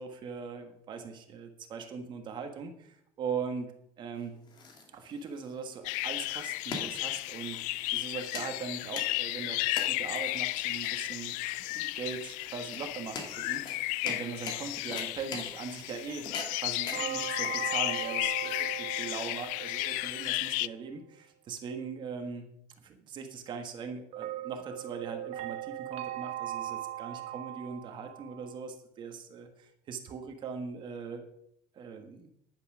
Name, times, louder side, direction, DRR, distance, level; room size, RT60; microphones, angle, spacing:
voice 1, 0.0-3.7 4.0-4.3 4.9-11.4 11.7-16.3 16.6-22.5 22.8-31.2 31.7-32.3, right 5 dB, 35° right, 5 dB, 1.5 m, -40 dB
sound 1, 4.1-19.1, left 4 dB, 35° left, 2.3 m, -44 dB
sound 2, 5.8-20.7, left 19 dB, 85° left, 0.4 m, -34 dB
sound 3, 16.9-20.5 24.1-28.7, right 13 dB, 55° right, 1.1 m, -39 dB
10.5 x 9.7 x 6.2 m, 0.73 s
cardioid pair, 175°, 13 cm